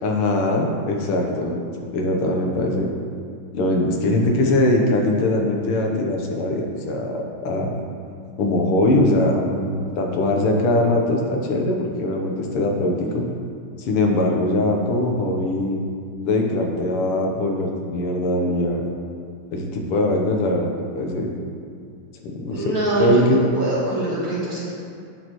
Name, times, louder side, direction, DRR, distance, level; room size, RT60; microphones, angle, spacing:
voice 1, 0.0-1.6 1.9-2.9 3.5-7.8 8.4-13.2 13.8-15.8 16.3-18.8 19.5-21.3 22.2-23.4, left 1 dB, 85° left, 1 dB, 1.8 m, -21 dB
voice 2, 22.5-24.7, right 1 dB, 45° right, -6 dB, 1.8 m, -24 dB
9.4 x 6.4 x 3.0 m, 2.3 s
omnidirectional pair, 2.4 m